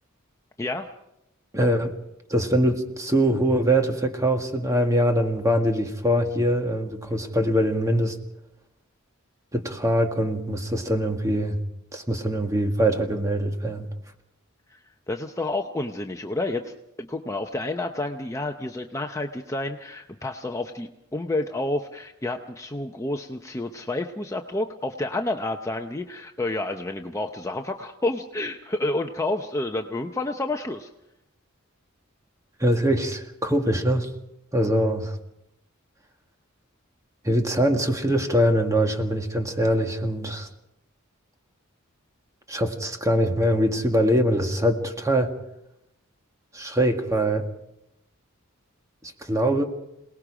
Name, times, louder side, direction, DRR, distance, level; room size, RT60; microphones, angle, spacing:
voice 1, 1.5-2.0 2.3-8.2 9.5-11.6 11.9-13.9 32.6-34.1 34.5-35.2 37.2-40.5 42.5-45.4 46.5-47.5 49.0-49.6, equal, 15° right, 4 dB, 1.8 m, -23 dB
voice 2, 15.1-30.9, left 2 dB, 15° left, 4 dB, 0.7 m, -29 dB
27.0 x 19.0 x 5.0 m, 0.85 s
head